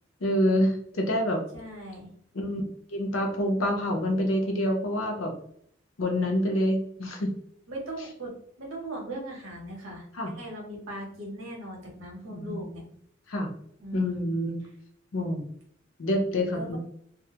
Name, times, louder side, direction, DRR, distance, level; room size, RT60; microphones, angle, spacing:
voice 1, 0.2-1.4 2.3-2.7 2.9-5.3 6.0-7.3 10.2-10.3 12.3-12.6 13.3-13.5 13.9-14.6 15.1-15.4 16.0-16.8, left 1 dB, 80° left, 2 dB, 0.6 m, -27 dB
voice 2, 1.5-2.1 7.7-8.3 8.6-12.8 13.8-14.2 16.5-16.8, right 1 dB, 85° right, 0 dB, 0.9 m, -39 dB
2.2 x 2.1 x 2.8 m, 0.65 s
head